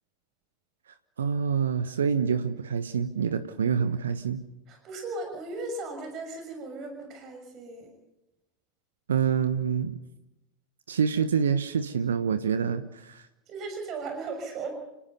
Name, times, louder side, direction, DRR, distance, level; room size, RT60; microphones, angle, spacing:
voice 1, 1.2-4.4 9.1-10.0 10.9-13.2, right 6 dB, 65° right, 11 dB, 1.2 m, -26 dB
voice 2, 4.7-7.9 13.5-14.7, right 3 dB, 35° right, 5 dB, 6.2 m, -37 dB
30.0 x 19.0 x 5.5 m, 0.93 s
figure-of-eight pair, 90°, 0 cm